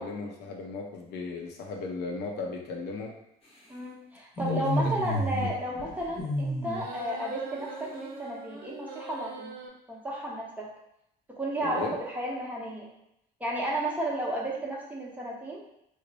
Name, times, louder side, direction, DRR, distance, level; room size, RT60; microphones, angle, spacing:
voice 1, 0.0-3.1 4.4-4.9 5.4-5.5 11.6-11.9, left 4 dB, 75° left, 0 dB, 0.7 m, -36 dB
voice 2, 3.7-9.5 9.9-10.7 11.3-12.9 13.4-15.6, right 1 dB, 10° right, -4 dB, 0.9 m, -33 dB
sound 1, 4.4-5.5 5.8-6.8, equal, 35° left, 1.0 m, -29 dB
sound 2, 6.7-9.7, right 4 dB, 70° right, 0.7 m, -42 dB
3.2 x 2.1 x 3.9 m, 0.81 s
cardioid pair, 110°, 17 cm